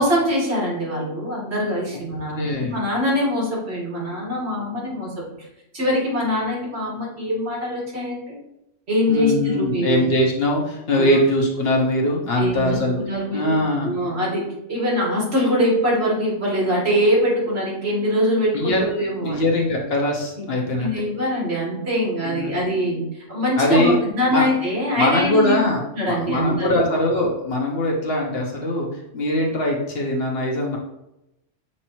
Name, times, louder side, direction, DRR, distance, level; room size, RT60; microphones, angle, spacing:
voice 1, 0.0-5.2 5.7-8.4 8.9-10.0 11.0-11.2 12.4-13.6 13.8-14.4 14.7-19.4 20.4-20.5 20.8-25.6 25.9-26.8, equal, 60° right, -4 dB, 1.8 m, -23 dB
voice 2, 2.3-2.8 9.1-13.0 13.3-13.9 18.5-18.9 19.2-20.9 22.2-22.5 23.6-24.0 24.3-24.5 24.9-28.9 29.1-30.8, left 1 dB, 55° left, 0 dB, 1.0 m, -21 dB
6.3 x 2.9 x 2.9 m, 0.88 s
omnidirectional pair, 1.3 m